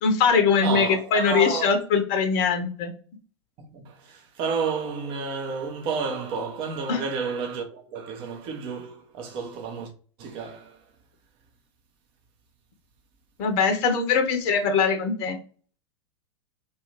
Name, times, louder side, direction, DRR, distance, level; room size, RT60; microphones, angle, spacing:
voice 1, 0.0-2.9 6.9-7.0 13.4-15.4, left 5 dB, 40° left, 0.6 m, -22 dB
voice 2, 0.6-1.7 3.6-9.9 10.2-10.8, right 5 dB, 35° right, 0.7 m, -31 dB
2.8 x 2.3 x 3.0 m
figure-of-eight pair, 90°, 15 cm